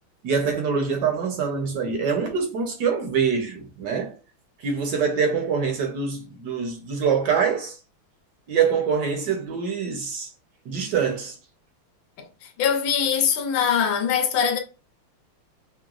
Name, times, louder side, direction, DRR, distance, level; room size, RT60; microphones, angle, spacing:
voice 1, 0.2-4.1 4.6-7.8 8.5-10.3 10.7-11.4, right 6 dB, 65° right, 1.1 m, -24 dB
voice 2, 12.2-14.6, left 7 dB, 80° left, 1.5 m, -23 dB
5.8 x 2.2 x 2.3 m
omnidirectional pair, 2.4 m